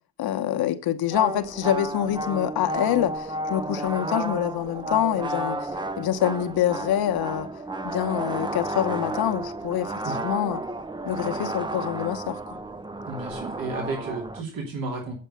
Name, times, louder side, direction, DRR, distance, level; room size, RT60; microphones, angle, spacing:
voice 1, 0.2-5.7 6.0-7.5 7.8-10.6 11.0-12.6, left 11 dB, 70° left, 1.0 m, -26 dB
sound 1, 1.1-14.4, right 2 dB, 10° right, 0.6 m, -32 dB
voice 2, 13.0-15.1, right 3 dB, 65° right, 3.0 m, -32 dB
8.5 x 5.4 x 6.8 m
cardioid pair, 75°, 38 cm